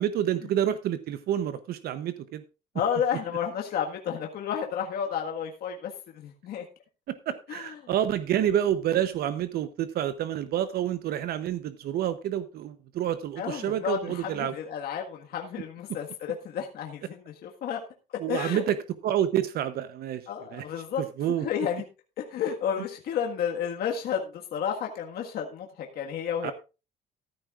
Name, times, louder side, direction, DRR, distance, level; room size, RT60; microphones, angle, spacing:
voice 1, 0.0-2.4 7.1-14.5 18.2-18.8 19.0-20.2 20.5-20.6 21.2-21.4 26.4-26.5, right 10 dB, 65° right, 12 dB, 0.8 m, -28 dB
voice 2, 2.7-6.7 7.5-7.9 13.4-17.8 18.1-18.6 20.3-21.0 21.4-21.8 22.2-26.5, left 8 dB, 65° left, 2 dB, 1.7 m, -31 dB
14.0 x 11.5 x 2.5 m, 0.30 s
cardioid pair, 110°, 17 cm